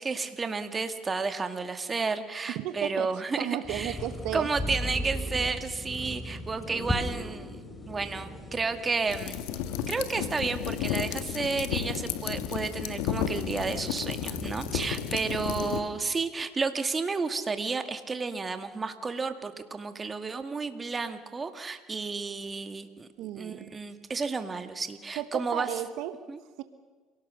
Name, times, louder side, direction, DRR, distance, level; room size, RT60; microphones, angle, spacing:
voice 1, 0.0-4.0 4.3-7.6 7.9-9.5 9.9-23.1 23.3-25.7 26.3-26.4, right 4 dB, 25° right, 8 dB, 2.1 m, -32 dB
voice 2, 2.5-3.1 3.4-4.5 23.2-23.7 25.2-26.2 26.6-26.7, right 12 dB, 75° right, 11 dB, 1.3 m, -34 dB
sound 1, 3.6-15.8, left 1 dB, 10° left, 3.9 m, -39 dB
Car, 3.8-10.3, left 4 dB, 55° left, 5.2 m, -49 dB
sound 2, 9.1-15.8, left 10 dB, 85° left, 1.6 m, -33 dB
28.0 x 18.0 x 6.5 m, 1.5 s
supercardioid pair, 85°, 0 cm